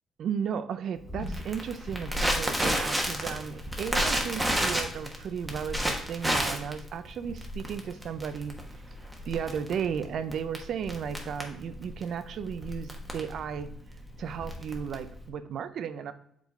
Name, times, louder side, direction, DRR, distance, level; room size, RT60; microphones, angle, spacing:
voice 1, 0.2-8.6 9.3-13.7 14.2-16.1, right 7 dB, 65° right, 12 dB, 0.5 m, -34 dB
Crackle, 1.1-15.3, equal, 5° right, 1.1 m, -31 dB
7.3 x 3.8 x 3.6 m, 0.73 s
cardioid pair, 90°, 0 cm